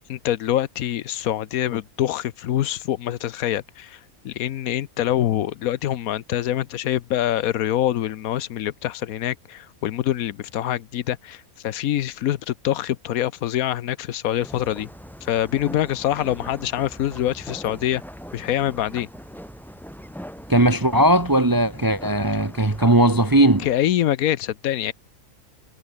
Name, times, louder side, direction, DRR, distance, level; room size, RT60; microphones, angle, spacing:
voice 1, 0.1-4.0 4.2-14.9 15.2-18.0 18.3-19.1 23.6-24.9, left 12 dB, 75° left, 1.2 m, -25 dB
sound 1, 14.4-23.7, equal, ahead, 4.7 m, -41 dB
voice 2, 20.5-23.7, right 1 dB, 15° right, 1.0 m, -18 dB
omnidirectional pair, 1.6 m